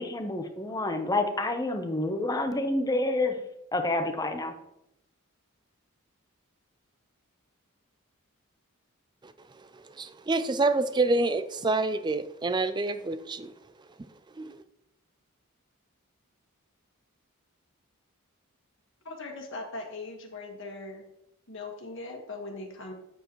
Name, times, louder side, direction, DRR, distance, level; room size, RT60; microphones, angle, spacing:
voice 1, 0.0-3.4 3.7-4.5, left 2 dB, 15° left, 0.9 m, -28 dB
voice 2, 10.0-13.5 14.4-14.6, right 2 dB, 20° right, 0.4 m, -27 dB
voice 3, 19.0-21.0 21.5-22.9, left 2 dB, 60° left, 1.7 m, -40 dB
8.9 x 7.6 x 3.1 m
head